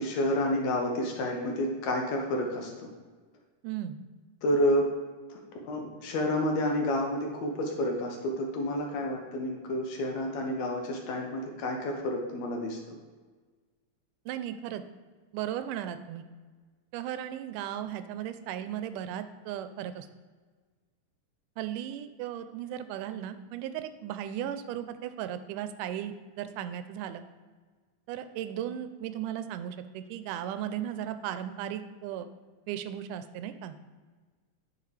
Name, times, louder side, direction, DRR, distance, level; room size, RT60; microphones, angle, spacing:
voice 1, 0.0-2.9 4.4-4.9 5.3-5.4 5.6-12.8, left 1 dB, 70° left, 1 dB, 2.0 m, -29 dB
voice 2, 3.6-4.0 14.3-14.8 15.3-16.3 16.9-20.1 21.6-27.2 28.1-32.3 32.7-33.8, right 10 dB, 85° right, 10 dB, 2.1 m, -36 dB
9.4 x 5.3 x 3.3 m, 1.4 s
omnidirectional pair, 3.6 m